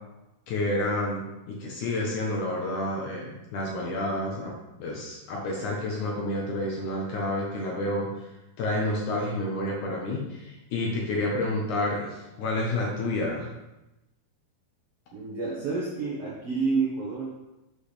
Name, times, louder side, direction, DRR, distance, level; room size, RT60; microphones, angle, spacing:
voice 1, 0.5-4.5 4.8-8.3 8.6-13.5, left 1 dB, 65° left, -2 dB, 2.2 m, -29 dB
voice 2, 15.1-17.3, right 4 dB, 60° right, -6 dB, 1.6 m, -29 dB
8.1 x 6.3 x 3.3 m, 0.97 s
omnidirectional pair, 4.4 m